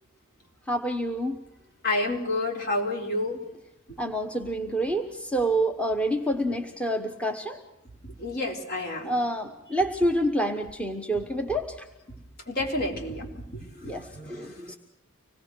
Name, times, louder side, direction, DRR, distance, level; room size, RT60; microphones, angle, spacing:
voice 1, 0.7-1.4 4.0-7.6 9.0-11.8 13.8-14.7, right 1 dB, 5° left, 4 dB, 1.1 m, -27 dB
voice 2, 1.8-3.4 3.9-4.0 4.7-4.8 8.0-9.2 12.5-13.9, left 2 dB, 50° left, 1 dB, 4.3 m, -29 dB
25.5 x 19.0 x 6.3 m, 0.86 s
head